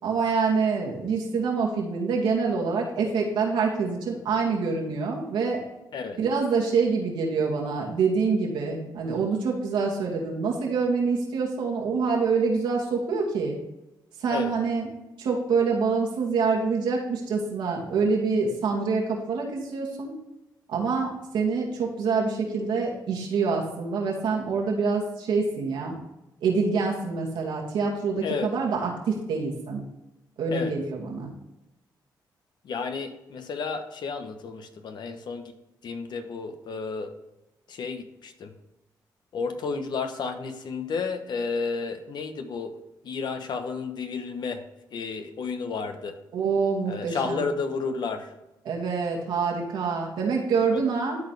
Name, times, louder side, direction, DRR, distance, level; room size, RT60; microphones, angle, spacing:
voice 1, 0.0-5.6 6.2-13.6 14.2-14.9 15.2-20.1 20.7-25.9 26.4-29.8 30.4-31.3 46.3-47.4 48.6-51.2, right 4 dB, 85° right, -2 dB, 2.3 m, -26 dB
voice 2, 32.6-35.5 35.8-37.1 37.7-38.5 39.3-42.7 43.0-44.6 44.9-46.1 46.9-48.3 50.7-50.8, left 4 dB, 70° left, 7 dB, 1.2 m, -32 dB
13.0 x 4.3 x 3.4 m, 0.96 s
cardioid pair, 70°, 8 cm